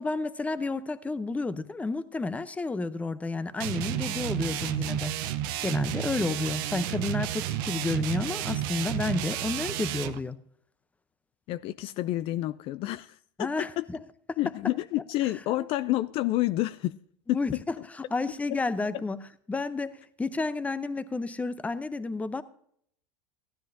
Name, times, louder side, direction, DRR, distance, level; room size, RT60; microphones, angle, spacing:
voice 1, 0.0-5.1 5.6-10.4 13.4-14.0 14.3-14.4 17.3-19.2 19.5-22.4, left 3 dB, 10° left, 0.6 m, -31 dB
sound 1, 3.6-10.2, right 12 dB, 70° right, 0.8 m, -31 dB
voice 2, 11.5-13.8 14.4-17.0 17.3-17.4, left 16 dB, 50° left, 0.4 m, -29 dB
15.0 x 10.0 x 2.6 m
supercardioid pair, 105°, 12 cm